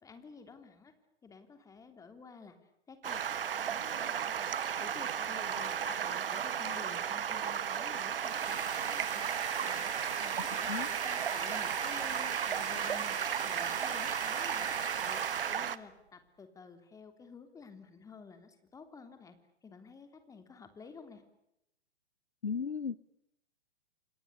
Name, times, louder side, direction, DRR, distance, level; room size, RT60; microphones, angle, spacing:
voice 1, 0.0-0.9 1.2-9.2 9.6-9.9 10.2-13.2 13.4-14.7 15.0-19.4 19.6-21.2, left 5 dB, 10° left, 8 dB, 3.1 m, -52 dB
Stream, 3.0-15.8, right 8 dB, 55° right, 1.5 m, -34 dB
voice 2, 5.6-6.0 10.7-10.9 22.4-23.0, left 6 dB, 75° left, 20 dB, 1.1 m, -36 dB
sound 1, 8.0-15.8, right 5 dB, 75° right, 1.1 m, -40 dB
28.5 x 27.5 x 6.9 m, 0.82 s
figure-of-eight pair, 115°, 33 cm